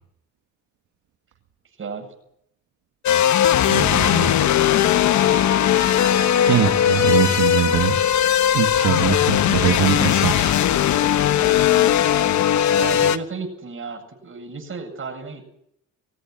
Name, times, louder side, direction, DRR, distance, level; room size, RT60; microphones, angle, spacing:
voice 1, 1.8-2.1 11.4-12.4 12.7-15.4, right 4 dB, 45° right, 3 dB, 7.9 m, -34 dB
sound 1, 3.1-13.2, left 10 dB, 70° left, 1.2 m, -18 dB
voice 2, 3.7-4.4 6.5-8.0 8.5-10.7, right 9 dB, 80° right, 3 dB, 2.1 m, -22 dB
22.0 x 16.5 x 9.4 m, 0.73 s
cardioid pair, 90°, 30 cm